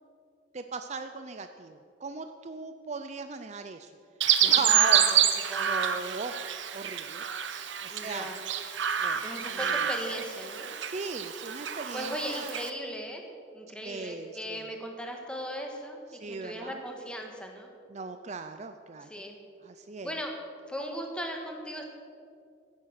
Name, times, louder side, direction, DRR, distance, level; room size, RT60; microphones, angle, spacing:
voice 1, 0.5-3.9 4.4-5.1 5.6-6.3 6.7-7.2 7.8-8.3 9.0-9.2 9.5-9.7 10.8-12.5 13.8-14.6 16.2-16.8 17.9-19.1 19.6-20.1, right 4 dB, 40° right, 8 dB, 0.5 m, -38 dB
Chirp tweet, 4.2-12.7, right 9 dB, 75° right, 0.9 m, -28 dB
voice 2, 4.4-5.2 5.5-6.0 7.8-8.4 9.2-10.7 11.9-13.3 13.5-17.7 19.0-19.4 20.0-20.3 20.7-21.8, equal, 5° left, 2 dB, 1.7 m, -38 dB
15.0 x 9.0 x 6.5 m, 2.4 s
head